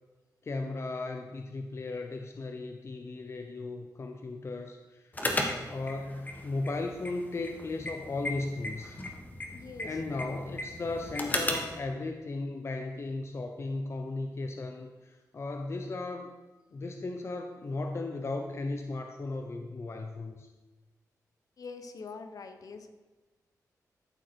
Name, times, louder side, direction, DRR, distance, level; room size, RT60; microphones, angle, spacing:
voice 1, 0.4-5.1 5.7-9.0 9.8-16.3 16.7-20.5, left 2 dB, 45° left, 4 dB, 0.8 m, -36 dB
sound 1, 5.1-11.8, left 1 dB, 25° left, 1.7 m, -36 dB
voice 2, 9.5-10.6 21.6-22.9, left 4 dB, 65° left, 7 dB, 1.2 m, -45 dB
13.5 x 7.6 x 4.6 m, 1.2 s
wide cardioid pair, 95°, 7 cm